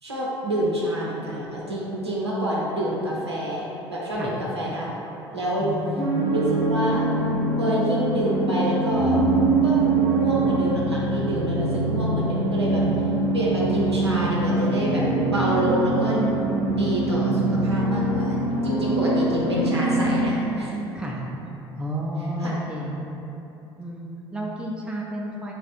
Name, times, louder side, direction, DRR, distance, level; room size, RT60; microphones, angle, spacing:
voice 1, 0.0-5.0 5.3-5.8 6.3-7.0 7.6-9.2 9.6-13.1 13.3-20.8 22.4-22.5, right 1 dB, 85° right, -6 dB, 0.5 m, -27 dB
sound 1, 6.0-20.2, right 2 dB, 65° left, 1.3 m, -23 dB
voice 2, 21.8-23.0 23.8-25.5, right 1 dB, 5° right, -3 dB, 0.4 m, -31 dB
3.4 x 2.4 x 4.1 m, 3.0 s
figure-of-eight pair, 60°, 14 cm